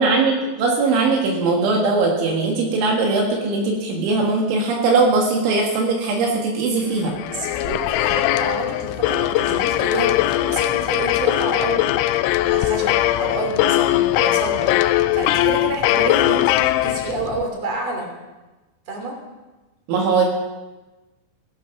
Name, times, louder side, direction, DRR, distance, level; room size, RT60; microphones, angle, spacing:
voice 1, 0.0-7.1 19.9-20.3, right 3 dB, 75° right, 0 dB, 4.2 m, -20 dB
sound 1, 7.0-17.4, left 14 dB, 85° left, 2.9 m, -20 dB
voice 2, 7.3-11.8 12.3-14.7 15.1-18.1 18.9-19.2, right 3 dB, 35° right, 2 dB, 3.6 m, -29 dB
16.5 x 14.0 x 6.0 m, 1.1 s
omnidirectional pair, 5.6 m